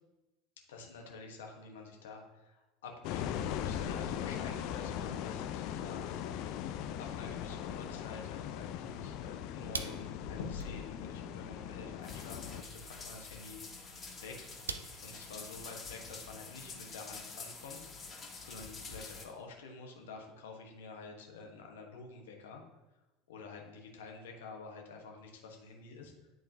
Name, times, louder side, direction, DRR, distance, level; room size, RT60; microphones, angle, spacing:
voice 1, 0.7-6.5 7.0-14.5 15.0-17.8 18.1-22.6 23.3-26.1, left 4 dB, 70° left, 2 dB, 1.1 m, -49 dB
sound 1, 3.0-12.6, left 9 dB, 55° left, 0.4 m, -39 dB
sound 2, 6.8-17.2, right 5 dB, 80° right, 0.4 m, -50 dB
sound 3, 12.0-19.3, left 4 dB, 30° left, 1.6 m, -47 dB
10.5 x 3.7 x 2.8 m, 1.0 s
figure-of-eight pair, 75°, 0 cm